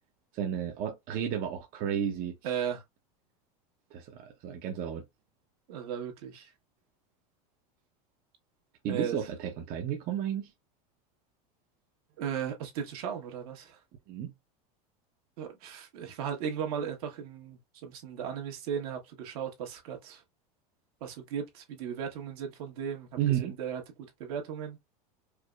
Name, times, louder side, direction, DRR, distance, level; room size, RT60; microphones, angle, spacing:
voice 1, 0.3-2.4 3.9-5.0 8.8-10.5 14.1-14.3 23.2-23.6, right 9 dB, 45° right, 0.8 m, -32 dB
voice 2, 2.4-2.8 5.7-6.5 8.8-9.2 12.2-13.8 15.4-20.2 21.0-23.1 23.4-23.8 24.2-24.8, right 8 dB, 70° right, 1.4 m, -36 dB
4.7 x 2.1 x 2.3 m
supercardioid pair, 115°, 20 cm